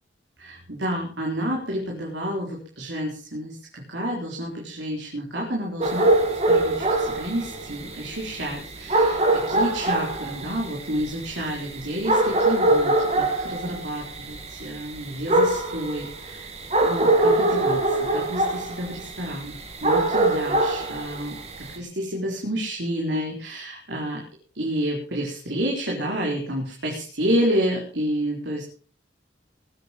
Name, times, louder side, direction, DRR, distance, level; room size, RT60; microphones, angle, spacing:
voice 1, 0.4-6.1 6.4-16.5 16.8-24.2 24.5-28.6, equal, 70° right, -1 dB, 4.5 m, -29 dB
sound 1, 5.8-21.8, right 2 dB, 35° right, 3.1 m, -23 dB
21.5 x 9.4 x 5.4 m, 0.41 s
head